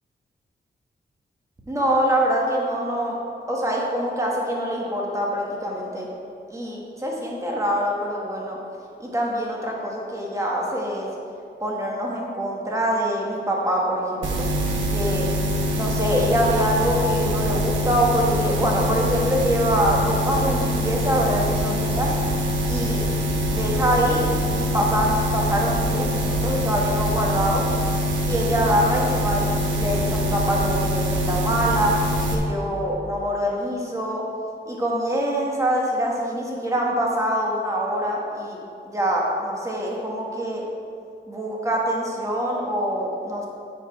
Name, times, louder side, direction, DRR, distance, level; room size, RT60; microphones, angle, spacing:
voice 1, 1.7-3.2 3.5-6.1 6.5-8.6 9.0-11.1 11.6-14.4 14.9-15.3 15.7-22.1 22.7-23.0 23.5-24.3 24.5-27.7 28.2-32.0 32.3-34.2 34.7-38.6 38.8-40.6 41.3-43.5, equal, 15° right, -3 dB, 1.3 m, -24 dB
sound 1, 14.2-32.3, equal, 90° right, 1.0 m, -24 dB
8.8 x 4.9 x 4.8 m, 2.4 s
wide cardioid pair, 140°, 19 cm